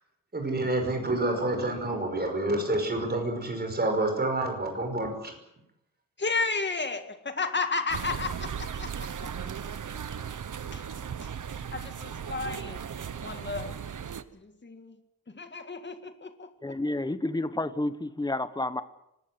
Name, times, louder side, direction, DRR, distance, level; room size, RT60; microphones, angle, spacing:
voice 1, 0.3-5.3, right 2 dB, 30° right, 5.6 m, -28 dB
voice 2, 6.2-9.8 10.2-10.3 10.7-10.9 11.2-11.4 11.7-12.9 13.2-13.8 14.3-15.0 15.3-16.8, left 4 dB, 30° left, 1.9 m, -33 dB
sound 1, 7.9-14.2, right 7 dB, 60° right, 1.0 m, -37 dB
voice 3, 16.6-18.8, left 2 dB, 10° left, 1.0 m, -30 dB
25.0 x 20.0 x 7.9 m
wide cardioid pair, 175°, 35 cm